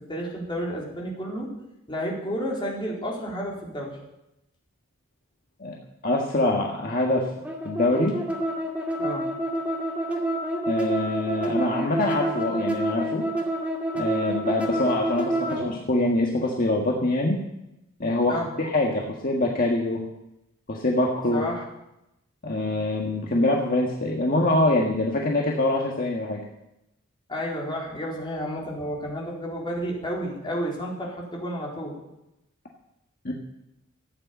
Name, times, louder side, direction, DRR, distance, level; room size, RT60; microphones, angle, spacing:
voice 1, 0.1-1.5 1.9-3.9 9.0-9.3 18.3-18.5 21.3-21.6 27.3-31.9, equal, 25° left, -3 dB, 4.2 m, -31 dB
voice 2, 6.0-7.3 7.6-8.2 10.7-13.2 13.9-17.4 18.0-20.0 20.7-21.4 22.4-26.4 33.2-33.3, left 2 dB, 45° left, -1 dB, 1.7 m, -24 dB
sound 1, 7.4-15.7, right 1 dB, 5° right, 2.3 m, -28 dB
14.5 x 9.0 x 8.4 m, 0.88 s
head